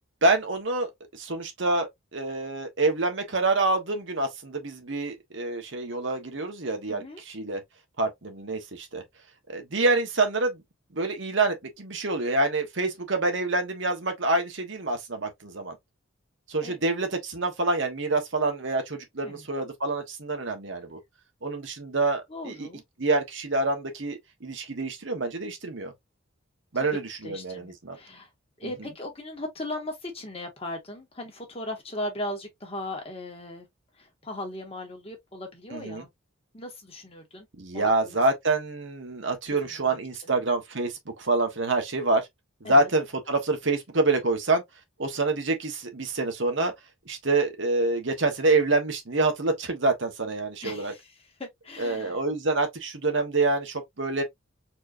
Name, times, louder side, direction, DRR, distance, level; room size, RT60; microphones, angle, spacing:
voice 1, 0.0-7.6 8.0-9.0 9.5-10.6 10.9-15.8 16.5-21.0 21.4-22.7 23.0-25.9 26.7-28.0 28.6-28.7 35.7-36.0 37.6-42.2 42.6-44.6 45.0-46.7 47.1-50.9 51.8-54.2, right 2 dB, 60° right, 1.2 m, -27 dB
voice 2, 6.9-7.2 16.6-16.8 19.2-19.5 22.3-22.8 27.2-28.3 28.6-33.7 34.0-36.1 36.5-37.5 37.7-38.2 39.6-40.0 42.6-42.9 50.6-51.1 51.4-52.2, left 1 dB, 30° left, 1.6 m, -38 dB
4.4 x 3.2 x 2.6 m
head